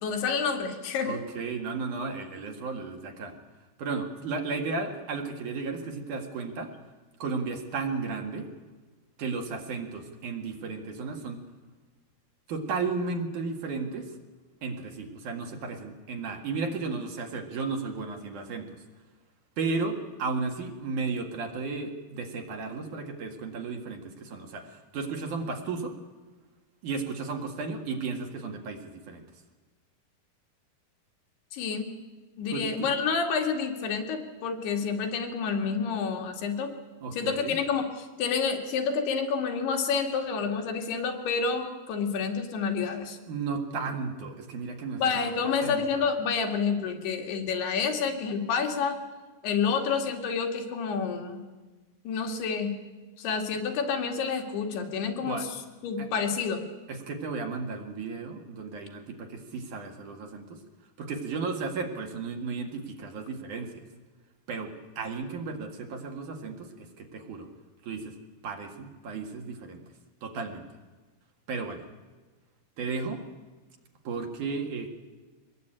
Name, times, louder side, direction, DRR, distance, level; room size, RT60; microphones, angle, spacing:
voice 1, 0.0-1.2 31.5-31.9 32.4-36.7 37.1-43.2 45.0-49.0 49.4-51.4 52.1-52.7 53.2-55.5 55.8-56.7, left 5 dB, 85° left, 3 dB, 4.2 m, -29 dB
voice 2, 1.0-3.3 3.8-6.7 7.2-8.5 9.2-11.4 12.5-14.1 14.6-18.8 19.6-25.9 26.8-29.2 32.5-32.9 37.0-37.6 43.3-46.0 55.2-55.5 56.0-56.1 56.9-60.6 61.0-63.8 64.5-67.5 67.8-68.1 68.4-69.8 70.2-70.6 71.5-71.9 72.8-73.2 74.0-74.9, right 4 dB, 55° right, 4 dB, 3.0 m, -34 dB
23.5 x 20.0 x 9.0 m, 1.3 s
omnidirectional pair, 4.6 m